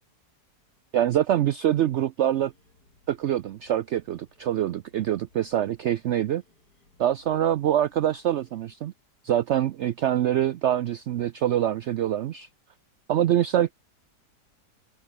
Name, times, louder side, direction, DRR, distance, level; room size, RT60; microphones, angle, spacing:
voice 1, 0.9-2.5 3.1-6.4 7.0-8.9 9.2-12.5 13.1-13.7, right 11 dB, 80° right, 0.6 m, -25 dB
sound 1, 2.3-8.8, left 2 dB, 80° left, 7.3 m, -63 dB
open air
omnidirectional pair, 1.7 m